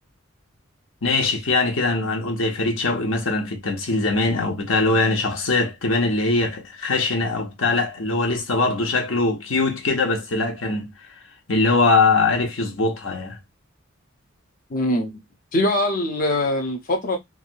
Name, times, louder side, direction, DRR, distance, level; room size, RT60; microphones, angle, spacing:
voice 1, 1.0-10.9 11.5-13.4, left 3 dB, 80° left, 1.0 m, -22 dB
voice 2, 14.7-15.1 15.5-17.2, left 1 dB, 45° left, 0.6 m, -22 dB
3.4 x 2.2 x 2.5 m
head